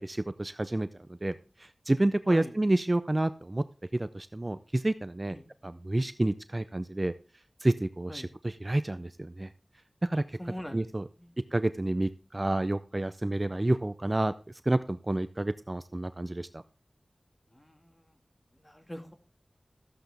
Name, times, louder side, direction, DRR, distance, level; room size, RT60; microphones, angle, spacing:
voice 1, 0.0-1.3 1.6-3.6 3.9-5.4 5.6-7.1 7.6-9.5 10.0-10.4 10.7-11.0 11.5-14.3 14.7-16.6, right 1 dB, 35° right, 13 dB, 0.4 m, -29 dB
voice 2, 10.4-10.9 11.2-11.3 17.5-18.2 18.5-19.1, equal, 20° left, 5 dB, 1.8 m, -43 dB
13.5 x 7.8 x 3.4 m, 0.37 s
wide cardioid pair, 55°, 0 cm